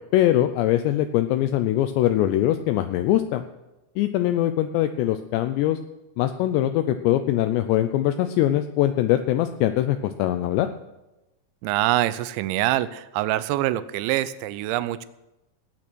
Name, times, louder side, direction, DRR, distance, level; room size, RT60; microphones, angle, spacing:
voice 1, 0.1-3.4 4.0-5.8 6.2-10.7, left 13 dB, 85° left, 8 dB, 2.5 m, -22 dB
voice 2, 11.6-15.1, right 15 dB, 80° right, 15 dB, 2.8 m, -25 dB
18.0 x 8.7 x 6.2 m, 0.97 s
omnidirectional pair, 5.7 m